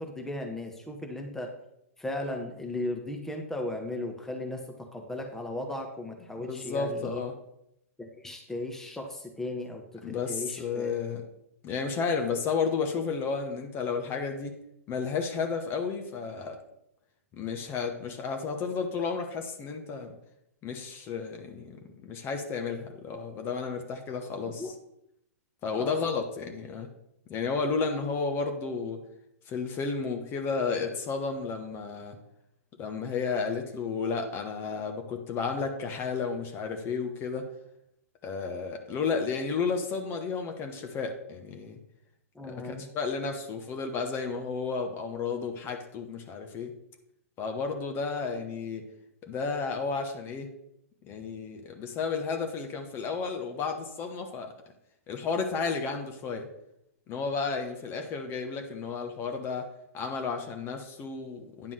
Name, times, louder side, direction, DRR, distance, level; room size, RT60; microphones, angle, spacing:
voice 1, 0.0-1.5 2.0-4.6 4.9-7.2 8.0-11.0 24.5-24.7 25.8-26.1 42.3-42.9, left 1 dB, 5° left, 2 dB, 1.1 m, -36 dB
voice 2, 6.4-7.3 10.0-11.2 11.6-14.5 14.9-16.6 17.3-20.1 20.6-24.7 25.6-26.9 27.3-29.0 29.5-32.2 32.8-37.5 38.2-41.8 42.5-46.7 47.4-48.8 49.3-50.5 51.0-54.5 55.1-56.5 57.1-59.7 59.9-61.7, left 5 dB, 30° left, 4 dB, 1.1 m, -32 dB
9.7 x 3.7 x 6.3 m, 0.80 s
figure-of-eight pair, 110°, 8 cm